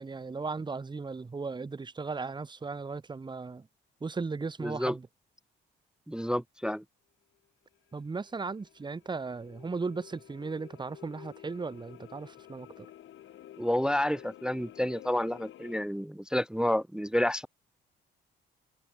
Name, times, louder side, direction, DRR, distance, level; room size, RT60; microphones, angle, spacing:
voice 1, 0.0-3.7 4.0-5.1 7.9-12.9, right 4 dB, 20° right, 1.2 m, -36 dB
voice 2, 4.6-5.0 6.1-6.8 13.6-17.5, left 1 dB, 5° right, 0.3 m, -29 dB
sound 1, 7.7-15.8, left 12 dB, 75° left, 2.7 m, -52 dB
cardioid pair, 90°, 20 cm